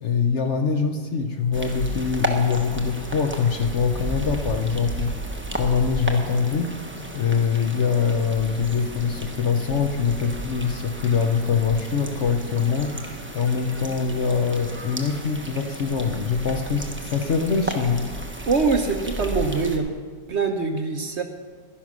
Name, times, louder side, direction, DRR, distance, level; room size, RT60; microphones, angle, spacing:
voice 1, 0.0-5.1 5.5-6.8 7.1-18.1, left 6 dB, 55° left, 6 dB, 1.0 m, -23 dB
sound 1, 1.5-19.8, right 1 dB, 10° right, 0.9 m, -33 dB
voice 2, 18.5-19.9 20.3-21.2, right 4 dB, 50° right, 5 dB, 1.0 m, -23 dB
12.0 x 10.0 x 6.1 m, 1.5 s
omnidirectional pair, 1.7 m